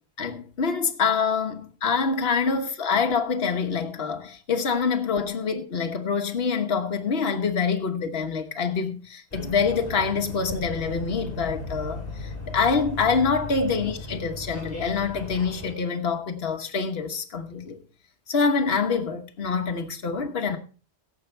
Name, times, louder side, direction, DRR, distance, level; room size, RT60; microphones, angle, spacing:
voice 1, 0.2-17.8 18.3-20.6, left 5 dB, 60° left, 1.4 m, -26 dB
sound 1, 9.3-15.7, left 1 dB, 35° left, 4.2 m, -36 dB
17.0 x 7.0 x 4.4 m
omnidirectional pair, 1.1 m